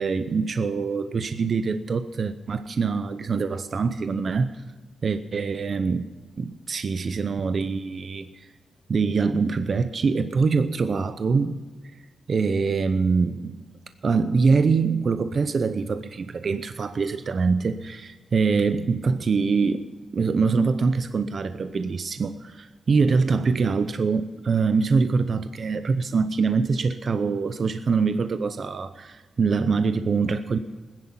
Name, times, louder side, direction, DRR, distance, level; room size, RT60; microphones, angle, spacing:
voice 1, 0.0-4.6 5.0-6.0 6.4-8.3 8.9-11.6 12.3-13.6 14.0-19.9 20.1-30.6, right 4 dB, 50° right, 10 dB, 0.7 m, -24 dB
19.5 x 10.5 x 5.7 m, 1.3 s
wide cardioid pair, 135°, 0 cm